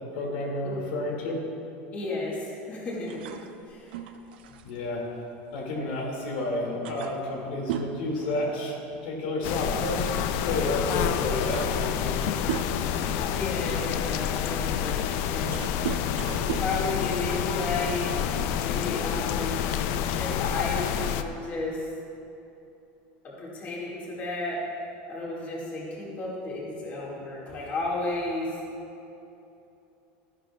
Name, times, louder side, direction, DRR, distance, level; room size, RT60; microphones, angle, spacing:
voice 1, 0.1-1.3 4.6-5.0 5.5-12.2, left 2 dB, 85° left, -2 dB, 2.1 m, -31 dB
voice 2, 1.9-3.2 3.7-3.9 13.2-15.5 16.4-18.2 18.6-19.6 20.2-21.8 23.2-24.6 25.1-28.5, left 2 dB, 30° left, -5 dB, 1.9 m, -33 dB
sound 1, 3.1-6.1 6.4-6.5 6.8-9.0 9.3-9.6 10.5-10.6 11.1-13.0 13.6-17.7, right 9 dB, 90° right, 0.6 m, -37 dB
sound 2, 9.4-21.2, left 9 dB, 50° left, 0.4 m, -28 dB
13.0 x 11.0 x 2.3 m, 2.9 s
supercardioid pair, 165°, 5 cm